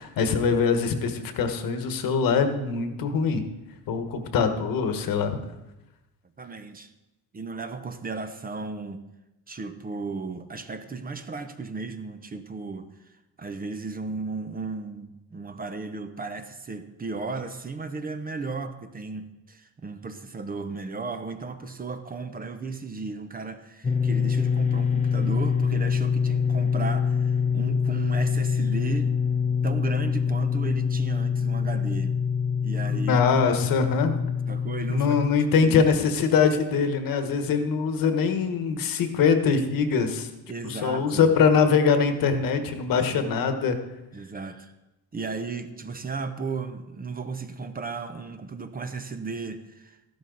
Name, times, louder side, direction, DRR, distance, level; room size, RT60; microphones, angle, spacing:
voice 1, 0.0-3.4 3.9-5.3 32.9-34.2 34.9-40.3 40.6-43.8, left 5 dB, 65° left, 7 dB, 1.4 m, -23 dB
voice 2, 6.4-6.9 7.3-9.0 9.5-29.1 29.6-32.2 32.6-33.2 34.5-36.0 40.5-41.3 42.9-43.3 44.1-44.7 45.1-50.0, right 4 dB, 25° right, 9 dB, 0.8 m, -35 dB
Dist Chr G up, 23.8-35.3, left 6 dB, 20° left, 0.8 m, -25 dB
13.5 x 12.0 x 4.0 m, 0.99 s
cardioid pair, 125°, 37 cm